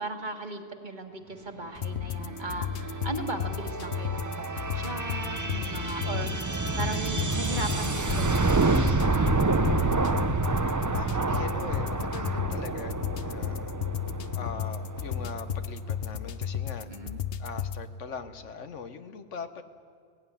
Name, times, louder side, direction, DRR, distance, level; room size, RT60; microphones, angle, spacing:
voice 1, 0.0-9.5 16.9-17.2, right 2 dB, 40° right, 5 dB, 1.7 m, -38 dB
sound 1, 1.7-17.8, left 8 dB, 60° left, 0.9 m, -34 dB
sound 2, 2.0-15.5, right 3 dB, 25° right, 0.5 m, -29 dB
voice 2, 10.9-13.7 14.3-16.9 17.4-19.6, left 5 dB, 85° left, 9 dB, 1.4 m, -41 dB
18.0 x 17.5 x 9.8 m, 2.2 s
omnidirectional pair, 1.2 m